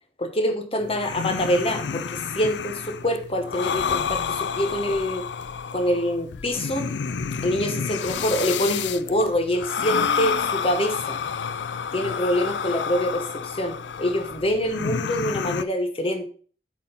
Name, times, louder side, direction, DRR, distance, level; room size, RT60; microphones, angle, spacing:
voice 1, 0.2-5.2 5.7-6.9 7.4-11.2 11.9-16.3, equal, 35° left, 6 dB, 1.1 m, -25 dB
sound 1, 0.8-15.6, left 6 dB, 85° left, 0.5 m, -29 dB
8.3 x 4.2 x 5.6 m, 0.42 s
head